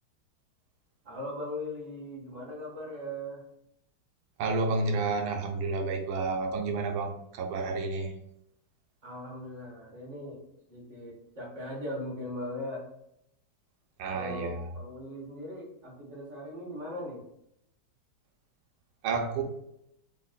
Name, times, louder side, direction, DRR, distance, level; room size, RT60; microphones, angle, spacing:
voice 1, 1.0-3.4 9.0-12.8 14.1-17.2, left 1 dB, 25° right, -4 dB, 1.1 m, -39 dB
voice 2, 4.4-8.1 14.0-14.6 19.0-19.4, right 3 dB, 90° right, 3 dB, 1.6 m, -30 dB
4.1 x 2.1 x 3.9 m, 0.78 s
omnidirectional pair, 2.3 m